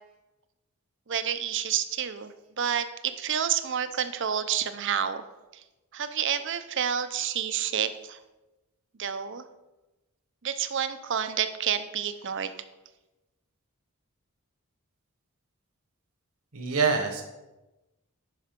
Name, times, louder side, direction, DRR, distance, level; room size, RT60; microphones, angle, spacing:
voice 1, 1.1-5.2 5.9-8.2 9.0-9.5 10.4-12.5, right 8 dB, 55° right, 11 dB, 0.6 m, -29 dB
voice 2, 16.5-17.2, right 5 dB, 75° right, 4 dB, 1.3 m, -25 dB
9.9 x 5.6 x 5.2 m, 1.0 s
head